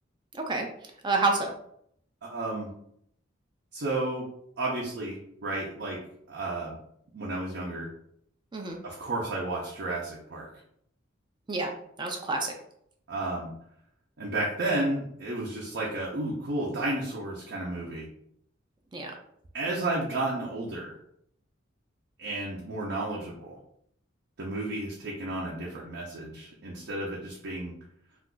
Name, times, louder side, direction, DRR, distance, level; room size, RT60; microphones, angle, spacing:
voice 1, 0.3-0.7 1.0-1.5 8.5-8.8 11.5-11.7 12.0-12.5 18.9-19.1, right 3 dB, 25° right, 2 dB, 0.4 m, -28 dB
voice 2, 2.3-2.7 3.7-4.2 4.6-6.0 6.3-6.8 7.1-7.9 8.8-10.5 13.1-13.5 14.2-18.1 19.5-20.9 22.2-23.6 24.4-27.7, right 2 dB, 65° right, -4 dB, 0.6 m, -32 dB
2.4 x 2.3 x 3.7 m, 0.70 s
head